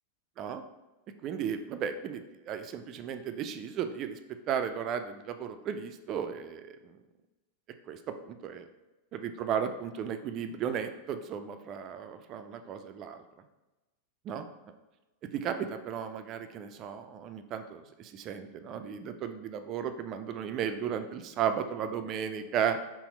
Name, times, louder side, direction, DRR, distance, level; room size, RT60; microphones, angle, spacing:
voice 1, 1.2-4.2 4.5-7.0 7.9-8.7 9.1-13.2 14.2-14.5 15.3-22.8, right 8 dB, 35° right, 8 dB, 0.3 m, -35 dB
4.1 x 2.0 x 4.1 m, 1.1 s
figure-of-eight pair, 90°, 0 cm